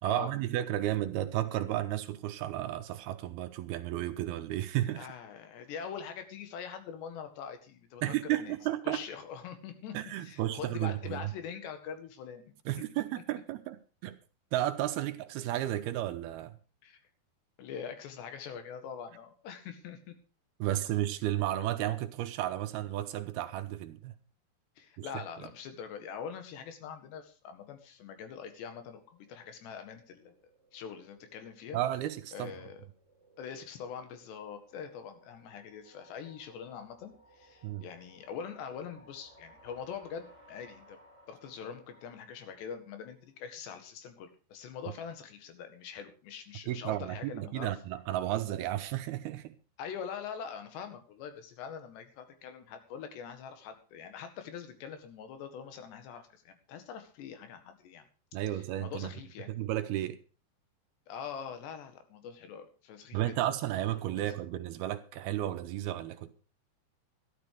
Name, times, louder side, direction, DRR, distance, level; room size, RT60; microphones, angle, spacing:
voice 1, 0.0-5.1 8.0-9.0 9.9-11.3 12.7-14.2 14.5-16.6 20.6-24.1 25.0-25.1 31.7-32.5 37.6-37.9 46.7-49.6 58.3-59.1 59.5-60.2 63.1-66.3, right 13 dB, 75° right, 2.6 m, -33 dB
voice 2, 5.0-8.5 8.8-10.0 10.2-12.5 16.8-17.0 17.6-20.1 24.8-30.3 30.7-31.8 32.3-32.9 33.4-41.0 41.3-47.7 49.8-58.0 58.5-59.5 61.1-63.3 64.2-64.3, left 7 dB, 85° left, 4.0 m, -43 dB
sound 1, 28.1-43.2, right 1 dB, 50° left, 7.7 m, -62 dB
12.5 x 12.5 x 4.8 m
omnidirectional pair, 4.8 m